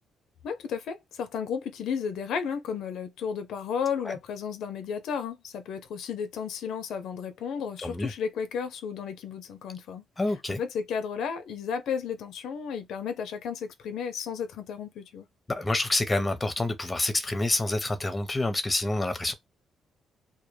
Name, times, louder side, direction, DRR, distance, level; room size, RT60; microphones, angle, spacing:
voice 1, 0.4-10.0 10.5-15.3, left 7 dB, 80° left, 0.4 m, -33 dB
voice 2, 7.8-8.1 10.2-10.6 15.5-19.3, left 2 dB, 20° left, 0.6 m, -27 dB
2.1 x 2.1 x 3.1 m
cardioid pair, 90°, 0 cm